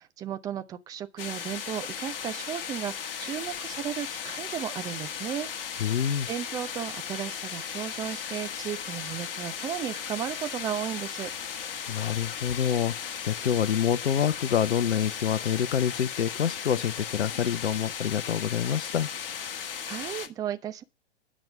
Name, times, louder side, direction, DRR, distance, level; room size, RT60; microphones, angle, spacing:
voice 1, 0.0-6.0 6.3-11.3 19.8-20.8, right 10 dB, 10° right, 0.5 m, -35 dB
sound 1, 1.2-20.3, left 8 dB, 50° left, 1.5 m, -36 dB
voice 2, 5.8-6.3 11.9-19.1, left 9 dB, 70° left, 0.7 m, -27 dB
10.5 x 6.1 x 6.7 m
figure-of-eight pair, 115°, 35 cm